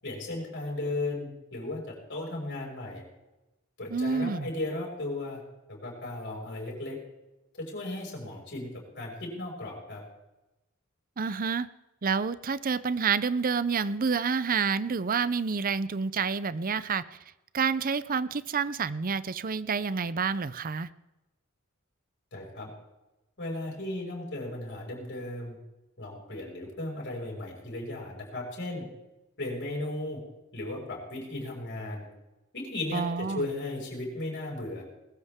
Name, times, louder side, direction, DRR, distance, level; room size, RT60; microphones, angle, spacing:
voice 1, 0.0-1.8 2.1-3.0 3.8-5.4 5.7-7.0 7.5-8.7 8.9-10.0 22.3-22.7 23.4-25.6 26.0-28.9 29.4-30.2 30.5-32.1 32.5-34.8, left 2 dB, 55° left, -2 dB, 6.1 m, -35 dB
voice 2, 3.9-4.5 11.2-11.7 12.0-17.0 17.5-20.9 32.9-33.5, right 5 dB, 40° right, 16 dB, 0.6 m, -28 dB
21.0 x 14.0 x 3.7 m, 0.99 s
head